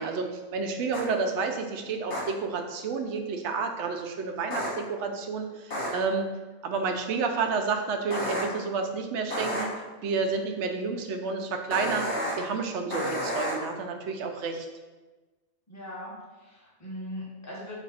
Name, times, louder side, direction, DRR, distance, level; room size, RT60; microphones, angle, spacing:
voice 1, 0.0-6.2 6.6-14.7, right 4 dB, 70° right, 5 dB, 0.8 m, -30 dB
sound 1, 0.9-1.0 2.1-2.2 4.5-4.7 5.7-5.9 8.1-8.4 9.3-9.6 11.7-12.3 12.9-13.5, equal, 60° left, 1.4 m, -30 dB
voice 2, 15.7-17.8, left 1 dB, 15° left, -6 dB, 1.0 m, -40 dB
4.0 x 2.6 x 4.1 m, 1.2 s
omnidirectional pair, 1.3 m